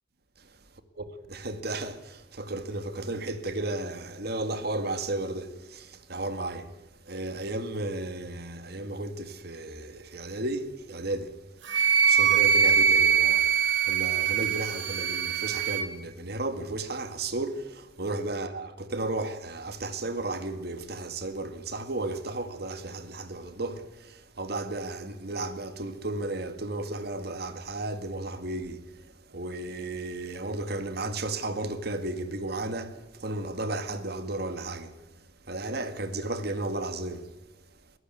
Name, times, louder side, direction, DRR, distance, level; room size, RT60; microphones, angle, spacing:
voice 1, 1.3-6.7 7.0-11.3 12.0-34.9 35.5-37.3, right 2 dB, 55° right, 2.1 m, -34 dB
Wind instrument woodwind instrument, 11.7-15.9, right 7 dB, 75° right, 2.6 m, -23 dB
21.5 x 18.5 x 9.4 m
head